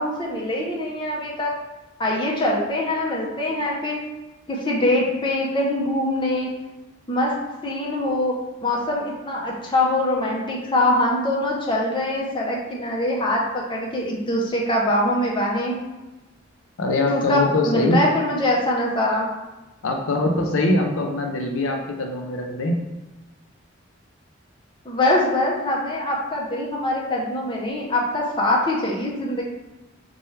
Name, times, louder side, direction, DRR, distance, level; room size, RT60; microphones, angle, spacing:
voice 1, 0.0-1.5 2.0-4.0 4.5-6.5 7.1-7.3 7.6-8.3 8.6-15.8 17.1-19.3 24.8-29.4, left 1 dB, 25° left, -2 dB, 0.6 m, -23 dB
voice 2, 16.8-18.1 19.8-22.8, left 2 dB, 75° left, 2 dB, 0.5 m, -22 dB
4.3 x 2.2 x 3.1 m, 1.1 s
head